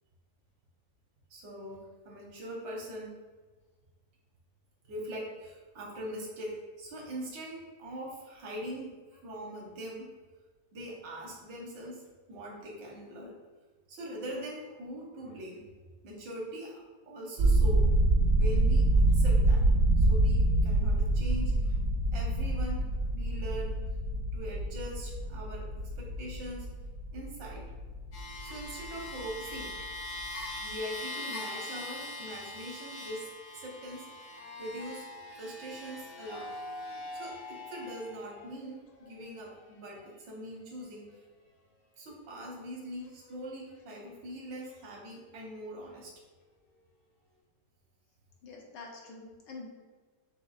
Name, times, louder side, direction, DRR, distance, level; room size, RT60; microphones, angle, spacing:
voice 1, 1.3-3.2 4.9-8.9 9.2-10.1 10.7-13.4 13.9-15.6 16.0-17.8 18.3-19.6 20.0-21.7 22.1-22.9 23.1-23.8 24.3-25.7 26.0-26.7 27.1-27.7 28.4-29.7 30.6-33.3 33.5-34.1 34.6-35.1 35.4-36.5 37.1-41.1 42.0-46.1, equal, 85° right, -3 dB, 1.7 m, -42 dB
sound 1, 17.4-29.3 29.5-29.9 30.2-30.4, right 2 dB, 65° right, 0.8 m, -26 dB
sound 2, 28.1-38.6 39.3-39.4, left 2 dB, 65° left, 1.7 m, -42 dB
voice 2, 48.4-49.7, left 3 dB, 85° left, -1 dB, 1.5 m, -46 dB
6.9 x 2.8 x 2.4 m, 1.4 s
omnidirectional pair, 1.9 m